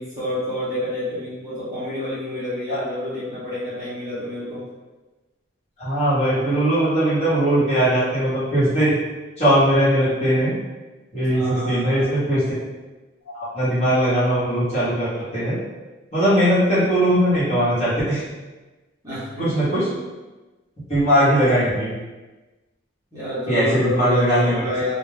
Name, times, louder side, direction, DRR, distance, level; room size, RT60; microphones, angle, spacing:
voice 1, 0.0-4.6 11.3-12.1 19.0-19.5 23.1-25.0, left 1 dB, 15° right, -12 dB, 0.8 m, -28 dB
voice 2, 5.8-8.9 9.4-10.5 11.1-12.4 13.3-15.5 16.1-18.2 19.4-19.9 20.9-21.9 23.5-24.6, equal, 30° left, -12 dB, 1.2 m, -19 dB
2.4 x 2.2 x 3.2 m, 1.2 s
head